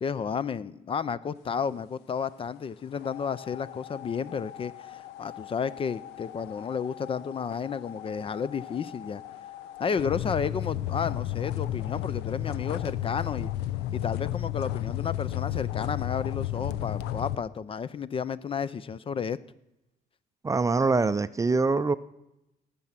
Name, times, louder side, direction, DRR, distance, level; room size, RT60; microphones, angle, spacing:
voice 1, 0.0-9.2 9.8-13.5 13.9-19.4, left 6 dB, 30° left, 17 dB, 0.5 m, -32 dB
sound 1, 3.0-17.4, left 12 dB, 90° left, 0.7 m, -34 dB
voice 2, 20.4-21.9, right 3 dB, 20° right, 14 dB, 0.5 m, -24 dB
18.5 x 7.0 x 7.4 m, 0.89 s
cardioid pair, 110°, 17 cm